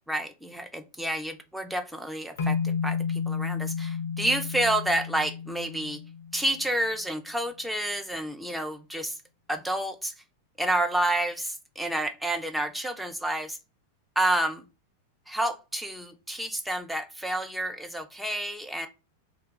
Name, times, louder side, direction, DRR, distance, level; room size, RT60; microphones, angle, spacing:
voice 1, 0.1-6.0 6.3-9.2 9.5-10.1 10.6-13.6 14.2-14.6 15.3-18.9, right 1 dB, ahead, 5 dB, 0.4 m, -29 dB
sound 1, 2.4-6.7, left 6 dB, 60° left, 0.3 m, -31 dB
2.8 x 2.3 x 3.6 m, 0.29 s
figure-of-eight pair, 90°, 0 cm